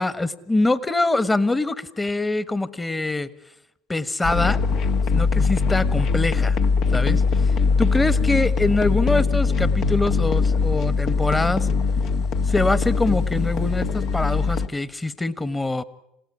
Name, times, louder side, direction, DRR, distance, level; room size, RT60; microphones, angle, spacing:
voice 1, 0.0-3.3 3.9-4.6 5.1-6.6 6.9-7.5 7.8-11.7 12.5-15.8, left 2 dB, 15° left, 15 dB, 1.4 m, -24 dB
sound 1, 4.2-14.7, left 4 dB, 60° left, 1.5 m, -21 dB
27.5 x 17.0 x 9.9 m, 0.87 s
hypercardioid pair, 70°, 0 cm